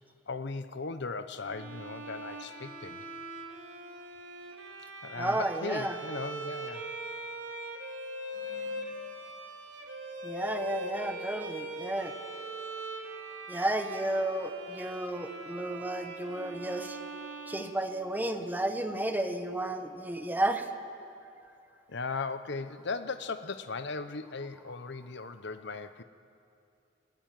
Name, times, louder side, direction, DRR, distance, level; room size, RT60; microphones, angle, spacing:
voice 1, 0.3-3.0 5.0-6.8 21.9-26.0, left 4 dB, 65° left, 10 dB, 1.0 m, -37 dB
Bowed string instrument, 1.4-18.4, right 1 dB, 70° right, 2.9 m, -42 dB
voice 2, 5.1-6.0 8.5-9.0 10.2-12.1 13.5-17.0 17.5-20.7, right 1 dB, 10° right, 6 dB, 1.4 m, -32 dB
25.5 x 20.0 x 9.3 m, 2.5 s
head